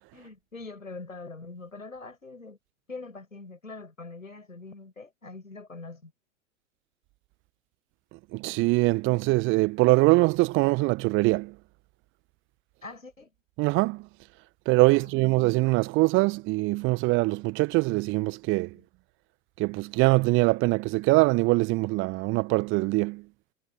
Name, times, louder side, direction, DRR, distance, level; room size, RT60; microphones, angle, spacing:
voice 1, 0.1-2.6 2.9-6.1 12.8-13.3 14.9-15.3 18.7-18.8, left 3 dB, 80° left, 6.0 m, -43 dB
voice 2, 8.3-11.5 13.6-14.1 14.7-18.8 19.6-23.2, right 23 dB, 30° right, 1.3 m, -23 dB
figure-of-eight pair, 100°, 39 cm